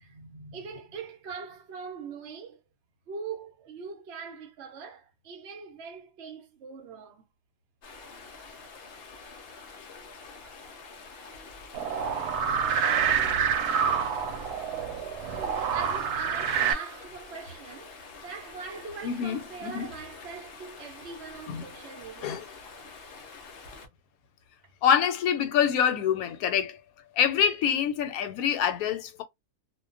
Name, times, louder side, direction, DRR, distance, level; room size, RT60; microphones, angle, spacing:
voice 1, 0.0-2.6 3.1-7.2 15.3-22.5, right 5 dB, 55° right, 0.8 m, -42 dB
Stream, 7.8-23.9, left 4 dB, 60° left, 0.6 m, -47 dB
sound 1, 11.7-16.7, right 7 dB, 90° right, 1.1 m, -27 dB
voice 2, 19.0-19.9 21.5-21.6 22.2-22.4 24.8-26.8 27.1-29.2, left 8 dB, 80° left, 1.0 m, -26 dB
2.5 x 2.2 x 2.4 m
omnidirectional pair, 1.6 m